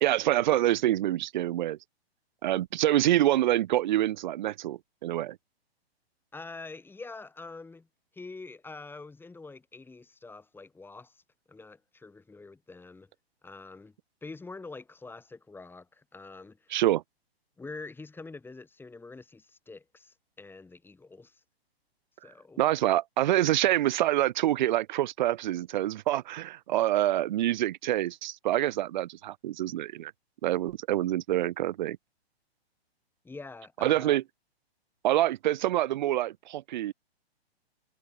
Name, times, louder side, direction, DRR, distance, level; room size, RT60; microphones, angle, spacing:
voice 1, 0.0-1.8 2.4-5.4 16.7-17.0 22.6-30.1 30.4-32.0 33.8-34.2 35.0-36.9, right 14 dB, 45° right, 0.5 m, -26 dB
voice 2, 6.3-7.9 8.1-11.2 11.5-13.1 13.4-13.9 14.2-16.7 17.6-21.4 22.2-22.6 33.2-34.2, left 3 dB, 5° left, 3.6 m, -45 dB
figure-of-eight pair, 120°, 32 cm